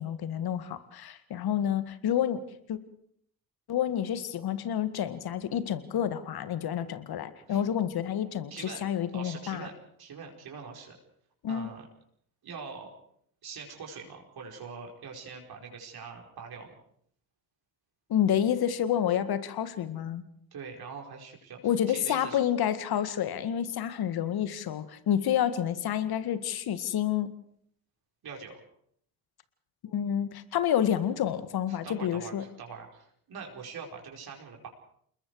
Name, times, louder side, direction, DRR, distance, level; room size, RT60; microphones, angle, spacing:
voice 1, 0.0-2.4 2.7-2.8 3.7-9.7 11.4-11.7 18.1-20.2 21.6-27.3 29.9-32.4, left 10 dB, 55° left, 12 dB, 2.0 m, -29 dB
voice 2, 8.5-8.8 9.1-9.7 10.0-10.9 11.5-11.8 12.4-12.9 13.4-16.8 20.5-21.6 21.9-22.4 28.2-28.6 31.7-34.7, right 5 dB, 55° right, 1 dB, 5.0 m, -43 dB
28.5 x 21.0 x 4.9 m, 0.66 s
hypercardioid pair, 50°, 44 cm